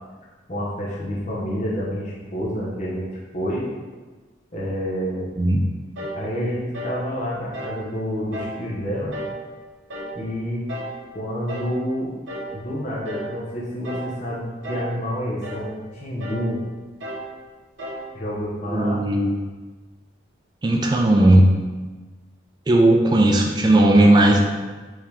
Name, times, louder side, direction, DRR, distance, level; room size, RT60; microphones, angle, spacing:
voice 1, 0.5-3.7 4.5-5.3 6.1-9.2 10.2-10.6 11.1-12.1 12.5-16.6 18.1-19.0, equal, 40° left, -6 dB, 0.8 m, -28 dB
voice 2, 5.4-5.7 18.7-19.4 20.6-21.5 22.7-24.4, right 1 dB, 25° right, 1 dB, 0.3 m, -16 dB
sound 1, 6.0-6.2 6.7-7.0 7.5-7.8 8.3-8.6 9.1-9.4 9.9-10.2 10.7-11.0 11.5-11.8 12.3-12.6 13.0-13.3 13.8-14.2 14.6-15.0 15.4-15.7 16.2-16.5 17.0-17.3 17.8-18.1, right 1 dB, 85° right, 0.9 m, -33 dB
4.8 x 2.9 x 3.4 m, 1.3 s
head